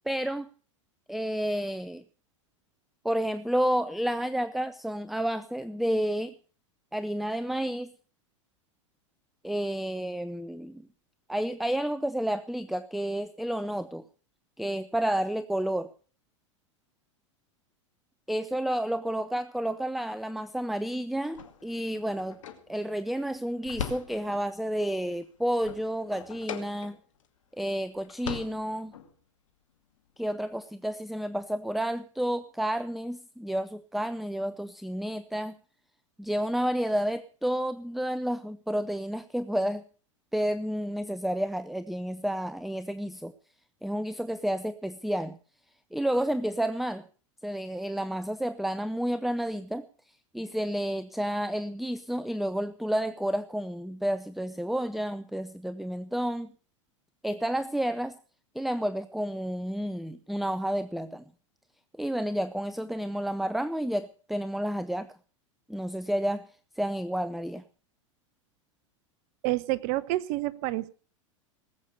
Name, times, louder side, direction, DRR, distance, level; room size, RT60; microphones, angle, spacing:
voice 1, 0.1-0.5 1.1-2.0 3.0-6.3 6.9-7.9 9.4-10.9 11.3-14.0 14.6-15.9 18.3-22.4 22.7-27.0 27.6-28.9 30.2-35.6 36.2-39.8 40.3-43.3 43.8-45.4 45.9-47.0 47.4-49.8 50.3-56.5 57.2-58.2 58.5-61.2 62.0-65.1 65.7-66.5 66.8-67.6, equal, ahead, 14 dB, 0.7 m, -30 dB
sound 1, 21.3-24.6 25.0-27.3 27.6-27.7 28.0-29.1, left 8 dB, 80° left, 2.3 m, -41 dB
voice 2, 69.4-70.9, right 18 dB, 50° right, 17 dB, 1.1 m, -28 dB
19.5 x 8.4 x 6.6 m, 0.41 s
hypercardioid pair, 100°, 16 cm